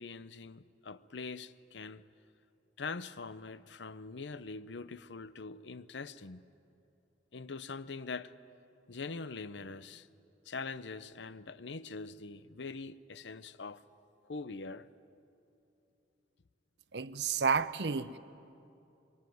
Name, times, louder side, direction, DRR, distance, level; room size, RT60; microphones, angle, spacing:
voice 1, 0.0-2.0 2.8-6.5 7.3-8.4 8.9-10.1 10.4-13.8 14.3-14.9, left 4 dB, 80° left, 0.7 m, -43 dB
voice 2, 16.9-18.2, right 5 dB, 70° right, 0.7 m, -31 dB
24.0 x 23.5 x 9.4 m
head